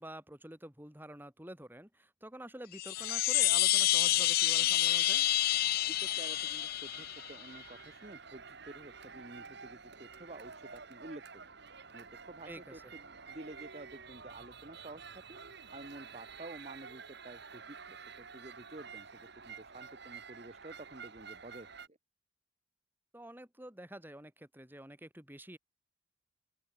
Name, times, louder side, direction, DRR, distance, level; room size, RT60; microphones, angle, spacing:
voice 1, 0.0-5.3 12.4-12.8 23.1-25.6, right 1 dB, 10° right, 6.5 m, -48 dB
Chime, 2.7-7.4, left 14 dB, 50° left, 0.4 m, -28 dB
sound 1, 2.9-21.9, right 5 dB, 60° right, 3.4 m, -50 dB
voice 2, 5.9-11.5 11.9-15.4 15.7-22.0, right 2 dB, 35° right, 1.7 m, -51 dB
open air
head